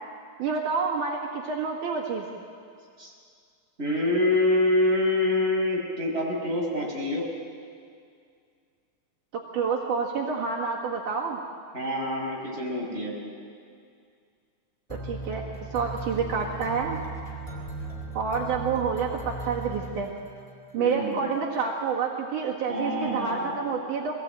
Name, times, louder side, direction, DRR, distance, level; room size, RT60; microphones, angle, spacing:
voice 1, 0.4-2.3 9.5-11.4 14.9-15.4 15.7-17.0 18.1-20.1 20.7-24.1, right 5 dB, 70° right, -3 dB, 3.3 m, -28 dB
voice 2, 3.8-7.3 11.7-13.1 20.8-21.3 22.7-24.0, left 1 dB, 20° right, -3 dB, 5.4 m, -26 dB
sound 1, 14.9-20.6, right 2 dB, 10° left, 4.4 m, -37 dB
23.5 x 18.5 x 9.0 m, 2.3 s
omnidirectional pair, 3.7 m